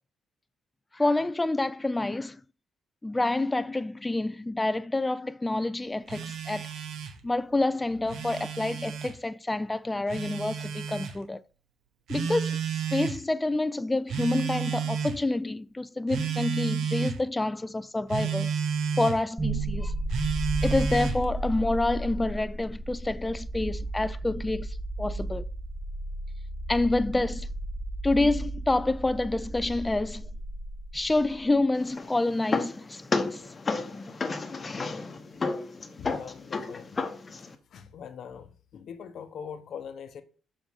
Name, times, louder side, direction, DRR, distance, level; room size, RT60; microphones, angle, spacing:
voice 1, 0.9-2.4 3.0-6.7 7.2-11.4 12.1-12.6 12.9-18.5 19.0-19.9 20.6-25.5 26.7-27.5 28.0-30.2 30.9-33.4, left 2 dB, 15° left, 0.3 m, -28 dB
Telephone, 6.1-7.2 7.9-9.1 10.1-11.1 12.1-13.2 14.1-15.2 16.1-17.2 18.1-19.2 20.1-21.2, right 6 dB, 75° right, 1.0 m, -31 dB
sound 1, 19.4-31.4, right 2 dB, 20° right, 2.1 m, -34 dB
sound 2, 31.7-37.5, left 4 dB, 30° left, 1.0 m, -32 dB
voice 2, 36.0-37.1 37.7-40.2, left 7 dB, 65° left, 0.9 m, -42 dB
7.2 x 5.0 x 3.5 m
cardioid pair, 90°, 0 cm